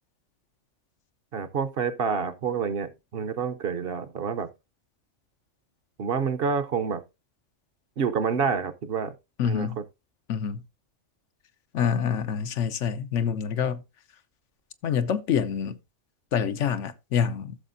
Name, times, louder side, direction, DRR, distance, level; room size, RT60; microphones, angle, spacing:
voice 1, 1.3-4.5 6.0-7.0 8.0-9.1 9.4-9.7, right 6 dB, 55° right, 0.9 m, -28 dB
voice 2, 9.4-9.8 10.3-10.6 11.7-13.8 14.8-15.8 16.3-17.6, left 7 dB, 85° left, 1.1 m, -26 dB
15.0 x 6.5 x 2.6 m
omnidirectional pair, 1.2 m